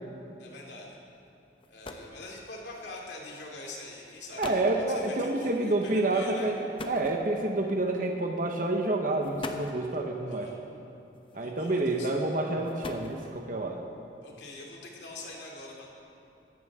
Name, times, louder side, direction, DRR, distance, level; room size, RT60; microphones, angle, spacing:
voice 1, 0.4-1.0 1.7-6.5 10.3-10.6 11.3-12.1 14.2-15.9, left 2 dB, 75° left, -1 dB, 2.5 m, -44 dB
sound 1, 1.3-1.4 1.6-2.2 3.2-3.4 4.1-4.2 4.4-4.8 6.8-7.6 8.6-8.7 9.2-9.9 11.2-11.6 12.5-13.5, left 2 dB, 30° left, 0.8 m, -41 dB
voice 2, 4.4-6.6 6.9-10.5 11.3-13.8, right 2 dB, 45° right, 1 dB, 0.9 m, -28 dB
17.5 x 14.0 x 3.6 m, 2.7 s
head